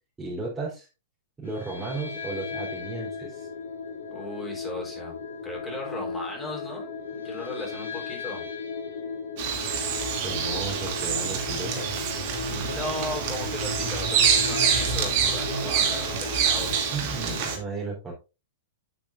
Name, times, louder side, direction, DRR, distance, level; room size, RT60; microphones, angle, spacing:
voice 1, 0.2-0.9 1.4-3.5 10.2-11.9 16.9-18.1, right 3 dB, 10° right, -5 dB, 3.7 m, -34 dB
sound 1, 1.4-17.6, left 5 dB, 60° left, 2.9 m, -36 dB
voice 2, 4.1-5.2 5.4-8.4 12.5-16.8, left 1 dB, 10° left, 0 dB, 4.0 m, -37 dB
Bird vocalization bird call bird song, 9.4-17.6, right 7 dB, 45° right, 2.6 m, -26 dB
9.5 x 8.6 x 2.6 m, 0.28 s
figure-of-eight pair, 105°, 0 cm